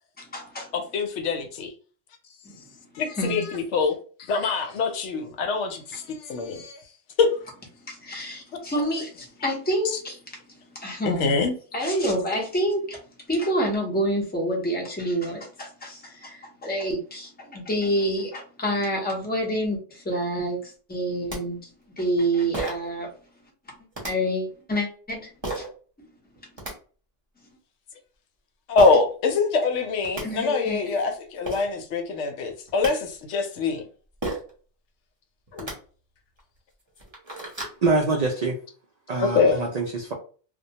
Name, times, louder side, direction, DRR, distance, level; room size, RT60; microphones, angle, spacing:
voice 1, 0.2-0.7 3.2-3.4 7.8-10.2 10.7-11.5 11.7-13.0 13.3-21.7 22.0-23.1 24.0-25.7 30.2-30.8, equal, 10° left, 0.4 m, -28 dB
voice 2, 0.7-1.7 2.9-6.8 7.2-7.4 8.2-8.3 9.8-10.0 11.0-11.5 11.9-12.0 28.7-33.8 35.5-35.7 39.1-39.7, left 4 dB, 75° left, 0.9 m, -24 dB
sound 1, 21.0-21.1 21.3-21.4 22.5-22.9 23.9-24.1 25.4-25.7 26.4-26.7 28.8-29.0 29.7-29.8 30.0-30.2 31.1-31.2 31.5-31.7 32.5-32.9 34.2-34.5 35.5-35.7 36.4-36.5 36.9-37.8, right 2 dB, 25° right, 0.8 m, -32 dB
voice 3, 37.8-38.6 39.1-40.1, right 3 dB, 70° right, 0.3 m, -24 dB
2.2 x 2.2 x 2.7 m
omnidirectional pair, 1.3 m